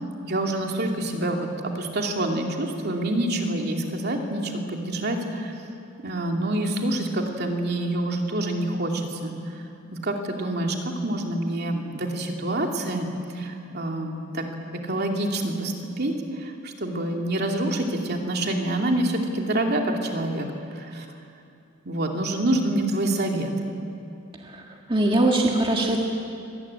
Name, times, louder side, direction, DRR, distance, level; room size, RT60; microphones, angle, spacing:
voice 1, 0.2-1.5 1.7-5.5 6.0-9.3 10.0-13.1 13.3-14.4 14.8-20.5 20.7-21.1 21.8-23.5, right 1 dB, 50° right, 2 dB, 2.7 m, -27 dB
voice 2, 24.9-26.0, right 2 dB, 25° right, 0 dB, 1.7 m, -21 dB
24.5 x 18.5 x 9.8 m, 2.6 s
head